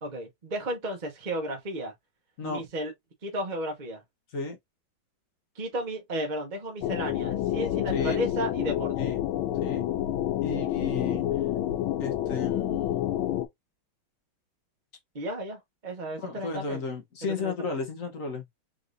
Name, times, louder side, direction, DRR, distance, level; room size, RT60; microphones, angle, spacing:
voice 1, 0.0-1.9 2.4-2.9 3.2-4.0 5.6-8.9 15.1-16.8 17.4-17.5, right 1 dB, 30° right, 0.8 m, -33 dB
sound 1, 6.8-13.5, left 12 dB, 90° left, 1.5 m, -28 dB
voice 2, 10.4-11.2 12.0-13.2 16.2-18.4, left 4 dB, 50° left, 1.3 m, -34 dB
3.8 x 3.6 x 2.5 m
omnidirectional pair, 2.2 m